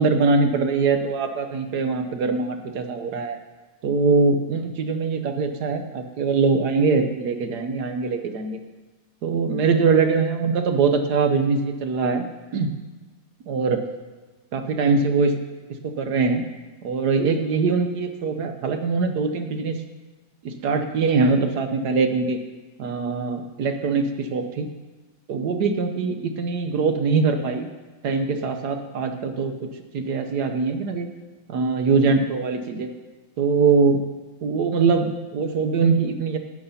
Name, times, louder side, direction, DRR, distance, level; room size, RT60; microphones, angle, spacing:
voice 1, 0.0-3.4 3.8-8.6 9.2-12.2 12.5-12.7 13.5-13.8 14.5-15.3 15.8-16.4 16.8-19.8 20.4-22.4 22.8-24.7 25.3-27.7 28.0-29.5 29.9-31.1 31.5-32.9 33.4-34.0 34.4-36.4, right 4 dB, 60° right, 7 dB, 1.1 m, -22 dB
9.5 x 8.5 x 5.6 m, 1.3 s
omnidirectional pair, 2.3 m